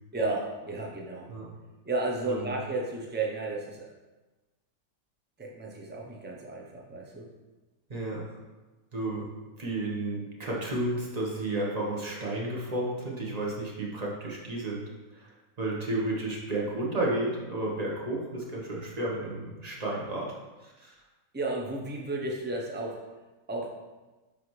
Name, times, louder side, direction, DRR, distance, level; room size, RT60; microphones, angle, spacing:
voice 1, 0.1-1.3 1.8-3.9 5.4-7.3 21.3-23.0 23.5-23.7, right 2 dB, 15° right, -1 dB, 0.4 m, -33 dB
voice 2, 7.9-8.2 8.9-9.3 9.6-14.9 15.1-15.3 15.6-20.3 20.6-20.9, right 2 dB, 30° right, -3 dB, 1.1 m, -32 dB
9.4 x 3.5 x 3.2 m, 1.2 s
omnidirectional pair, 1.6 m